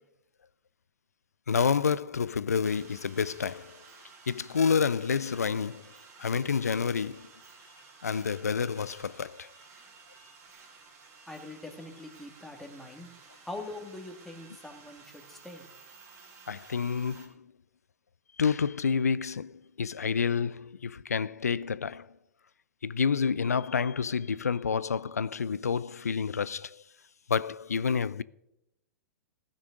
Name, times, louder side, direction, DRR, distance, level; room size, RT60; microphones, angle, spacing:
voice 1, 1.5-3.8 4.3-5.9 6.2-7.3 8.0-9.5 16.5-17.5 18.4-22.1 22.8-26.8 27.3-28.2, left 6 dB, 85° left, 0.4 m, -29 dB
sound 1, 2.6-17.3, right 4 dB, 40° right, 2.8 m, -54 dB
voice 2, 11.3-13.1 13.4-15.7, left 2 dB, 5° left, 1.9 m, -43 dB
15.5 x 6.3 x 6.5 m
figure-of-eight pair, 105°, 8 cm